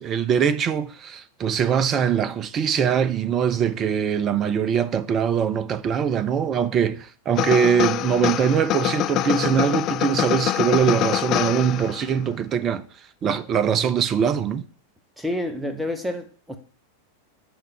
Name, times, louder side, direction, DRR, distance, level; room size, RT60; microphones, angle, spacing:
voice 1, 0.0-12.9 13.2-14.6, right 8 dB, 30° right, 0.6 m, -22 dB
sound 1, 7.4-12.1, left 14 dB, 35° left, 0.4 m, -25 dB
voice 2, 15.2-16.6, left 1 dB, 5° right, 1.2 m, -29 dB
10.0 x 3.7 x 6.6 m
figure-of-eight pair, 90°, 0 cm